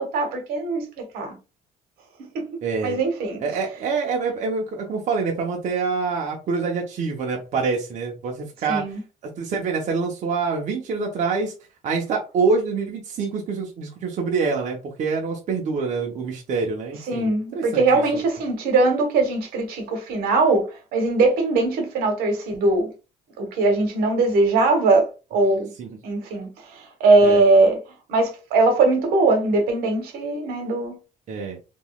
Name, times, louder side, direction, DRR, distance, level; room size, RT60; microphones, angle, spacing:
voice 1, 0.0-1.4 2.3-2.5 2.8-3.4 8.7-9.0 17.1-20.7 20.9-22.9 23.4-25.7 26.0-26.5 26.7-27.8 28.1-31.0, right 3 dB, 80° right, 1.3 m, -20 dB
voice 2, 2.6-3.0 3.4-8.8 9.4-11.5 11.8-18.2 25.8-25.9 27.2-27.4 31.3-31.6, right 4 dB, 55° right, 0.9 m, -26 dB
3.6 x 3.1 x 2.4 m
cardioid pair, 110°, 15 cm